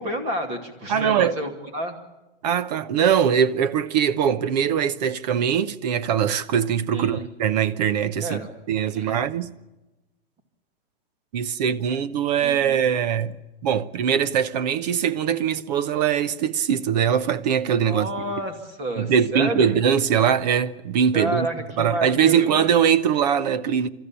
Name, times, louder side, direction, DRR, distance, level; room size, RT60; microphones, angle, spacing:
voice 1, 0.0-2.0 6.9-7.3 8.2-8.5 8.9-9.2 12.4-12.8 17.8-19.7 21.1-22.7, right 1 dB, 20° right, 2.6 m, -30 dB
voice 2, 0.9-1.4 2.4-8.4 8.7-9.5 11.3-13.4 13.6-18.1 19.0-21.5 21.8-23.9, right 8 dB, 45° right, 0.9 m, -22 dB
29.5 x 14.0 x 8.8 m
supercardioid pair, 170°, 30 cm